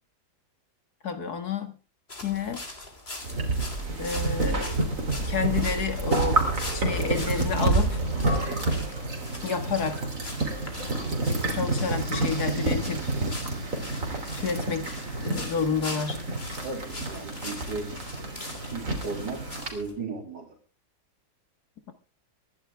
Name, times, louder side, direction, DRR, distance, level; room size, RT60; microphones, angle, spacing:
voice 1, 1.0-1.7 2.2-2.6 4.0-4.7 5.2-6.4 6.7-8.0 9.4-10.0 11.5-13.1 14.3-14.9 15.2-16.2, left 6 dB, 55° left, 8 dB, 2.2 m, -30 dB
sound 1, 2.1-19.9, left 2 dB, 30° left, 3.2 m, -42 dB
sound 2, 3.2-19.7, right 2 dB, 45° right, 3.5 m, -29 dB
voice 2, 16.6-17.9 18.7-19.4 19.7-20.5, right 4 dB, 65° right, -3 dB, 3.7 m, -35 dB
25.0 x 11.5 x 3.5 m, 0.35 s
omnidirectional pair, 2.0 m